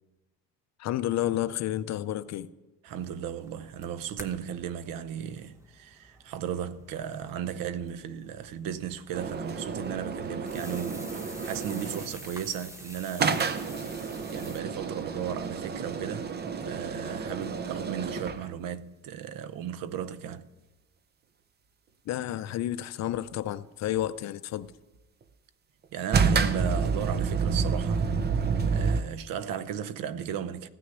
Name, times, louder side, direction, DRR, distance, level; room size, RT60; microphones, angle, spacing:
voice 1, 0.8-2.5 22.1-24.7, left 13 dB, 50° left, 0.5 m, -30 dB
voice 2, 2.8-14.0 14.3-16.3 16.7-20.5 25.9-28.1 28.7-30.7, right 9 dB, 65° right, 0.8 m, -35 dB
sound 1, 2.9-14.6, equal, 10° right, 1.0 m, -49 dB
sound 2, 9.1-12.3 13.2-18.5 26.1-29.0, right 5 dB, 30° right, 0.7 m, -29 dB
15.5 x 6.3 x 9.9 m
cardioid pair, 135°, 36 cm